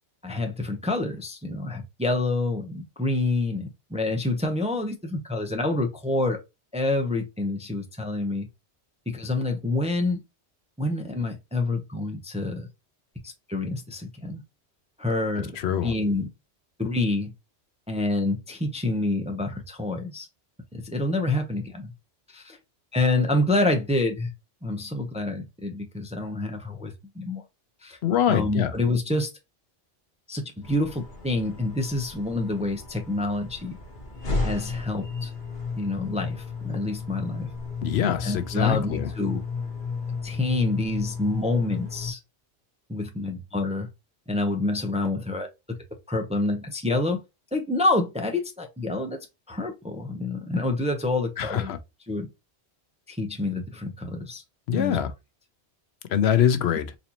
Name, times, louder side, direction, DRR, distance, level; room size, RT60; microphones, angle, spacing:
voice 1, 0.2-6.4 6.7-8.5 9.1-10.2 10.8-12.7 13.2-14.4 15.0-15.6 15.8-16.3 16.8-17.3 17.9-20.3 20.8-21.9 22.3-22.6 22.9-24.3 24.6-27.4 27.8-28.0 28.3-29.3 30.3-33.8 34.4-35.3 35.8-37.5 38.2-39.4 40.2-42.2 42.9-43.9 44.3-45.5 46.1-47.2 47.5-49.2 49.5-51.7 52.1-52.3 53.1-54.4 54.7-55.0, left 2 dB, 10° right, 0.5 m, -27 dB
voice 2, 28.0-28.7 37.8-39.1 51.4-51.8 54.7-55.1 56.1-56.9, left 9 dB, 70° left, 0.8 m, -23 dB
sound 1, 30.6-42.1, left 4 dB, 45° left, 1.2 m, -33 dB
4.1 x 2.6 x 2.8 m
omnidirectional pair, 1.1 m